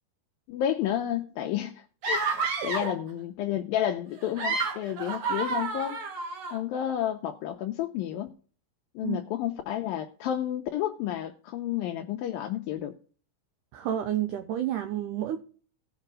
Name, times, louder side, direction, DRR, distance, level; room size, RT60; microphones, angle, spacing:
voice 1, 0.5-6.0 6.5-8.3 9.0-12.9, left 11 dB, 75° left, 3 dB, 2.4 m, -31 dB
sound 1, 2.0-3.0 4.2-6.6, right 4 dB, 50° right, 1.7 m, -30 dB
voice 2, 2.6-2.9 9.0-9.2 13.7-15.4, right 11 dB, 75° right, 8 dB, 1.9 m, -30 dB
17.5 x 5.8 x 3.8 m, 0.41 s
omnidirectional pair, 4.4 m